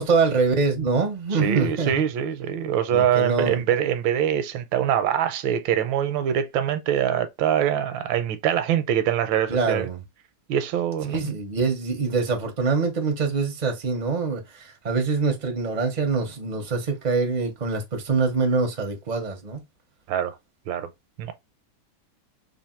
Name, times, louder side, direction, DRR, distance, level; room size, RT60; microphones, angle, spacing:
voice 1, 0.0-1.9 2.9-3.6 9.5-10.0 11.1-19.6, right 4 dB, 55° right, 0.4 m, -24 dB
voice 2, 1.4-9.9 10.5-11.4 20.1-20.4 20.7-20.9 21.2-21.3, right 9 dB, 80° right, 1.3 m, -24 dB
3.4 x 2.5 x 4.3 m
omnidirectional pair, 2.2 m